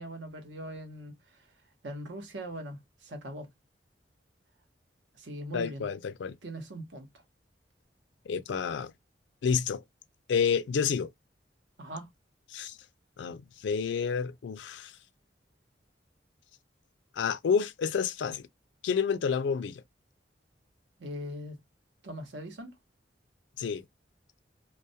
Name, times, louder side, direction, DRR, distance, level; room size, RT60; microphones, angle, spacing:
voice 1, 0.0-1.5 1.8-3.5 5.1-5.9 6.4-7.1 11.8-12.1 21.0-21.6 22.0-22.7, right 1 dB, 70° right, 0.8 m, -41 dB
voice 2, 5.5-6.4 8.3-8.9 9.4-9.8 10.3-11.1 12.5-12.8 13.2-14.9 17.2-18.5 18.8-19.8 23.6-23.8, left 6 dB, 70° left, 0.3 m, -29 dB
2.2 x 2.0 x 2.7 m
head